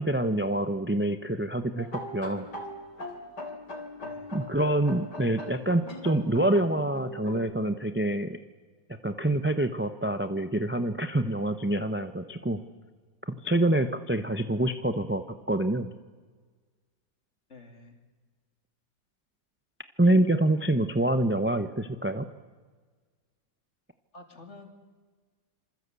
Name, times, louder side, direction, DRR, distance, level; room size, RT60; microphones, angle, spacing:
voice 1, 0.0-2.5 4.3-8.4 9.0-12.6 13.3-15.9 20.0-22.3, right 1 dB, 10° right, 9 dB, 0.6 m, -26 dB
sound 1, 1.8-7.4, left 1 dB, 70° left, 4.1 m, -40 dB
voice 2, 4.0-4.3 17.5-18.0 24.1-24.7, left 2 dB, 40° left, 4 dB, 3.4 m, -49 dB
26.5 x 24.5 x 8.4 m, 1.4 s
omnidirectional pair, 1.9 m